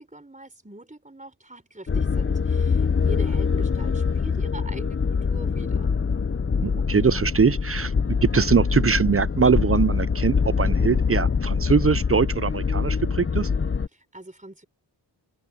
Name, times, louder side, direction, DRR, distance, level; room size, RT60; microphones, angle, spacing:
voice 1, 0.0-5.9 13.9-14.6, right 1 dB, 15° right, 4.2 m, -42 dB
sound 1, 1.9-13.9, left 5 dB, 30° left, 0.6 m, -24 dB
voice 2, 6.6-13.5, right 5 dB, 30° right, 0.5 m, -22 dB
cardioid pair, 45°, 45 cm